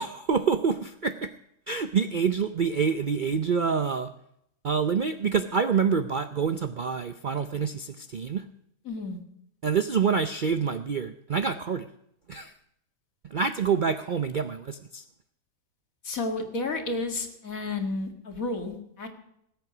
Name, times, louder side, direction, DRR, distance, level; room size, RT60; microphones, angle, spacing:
voice 1, 0.0-1.3 1.7-4.1 4.6-8.4 9.6-11.9 12.3-12.5 13.3-15.0, right 6 dB, 50° right, 9 dB, 0.6 m, -27 dB
voice 2, 8.8-9.2 16.0-19.1, left 3 dB, 65° left, 5 dB, 2.3 m, -31 dB
19.0 x 8.2 x 6.0 m, 0.76 s
omnidirectional pair, 1.6 m